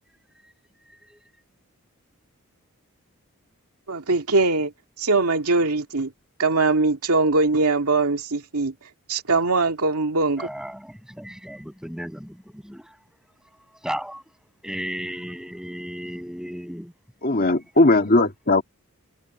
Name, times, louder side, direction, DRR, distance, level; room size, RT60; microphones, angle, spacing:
voice 1, 3.9-4.7 5.0-6.1 6.4-8.7 9.1-10.5, right 3 dB, 85° right, 2.3 m, -21 dB
voice 2, 10.4-13.0 13.8-16.9 17.3-17.4, equal, 5° right, 7.3 m, -35 dB
voice 3, 17.2-18.6, left 2 dB, 40° left, 1.9 m, -18 dB
head